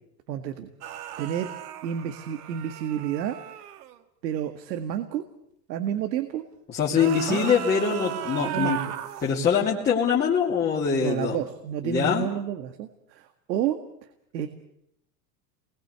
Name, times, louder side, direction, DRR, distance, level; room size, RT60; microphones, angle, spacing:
voice 1, 0.3-0.7 1.2-1.5 1.8-3.4 4.2-5.2 5.7-6.5 7.3-7.4 8.5-9.0 11.0-13.8 14.3-14.5, right 10 dB, 80° right, 8 dB, 2.0 m, -30 dB
sound 1, 0.8-4.0 6.8-9.3, right 11 dB, 65° right, 2.0 m, -35 dB
voice 2, 6.7-8.8 9.2-11.4 11.8-12.3, left 6 dB, 20° left, -5 dB, 2.8 m, -23 dB
28.5 x 21.0 x 8.2 m, 0.79 s
supercardioid pair, 150°, 50 cm